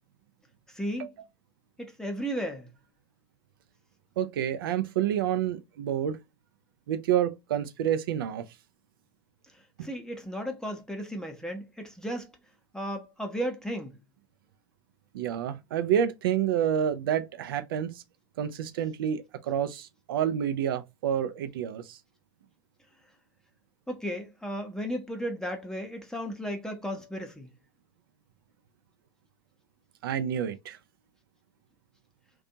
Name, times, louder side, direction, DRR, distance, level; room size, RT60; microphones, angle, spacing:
voice 1, 0.7-1.1 1.8-2.7 9.8-12.3 12.7-14.0 23.9-27.5, equal, 5° left, 0.7 m, -34 dB
voice 2, 4.2-6.2 6.9-8.5 15.1-18.0 18.4-22.0 30.0-30.8, right 9 dB, 70° right, 0.4 m, -28 dB
2.6 x 2.3 x 2.6 m
hypercardioid pair, 80°, 12 cm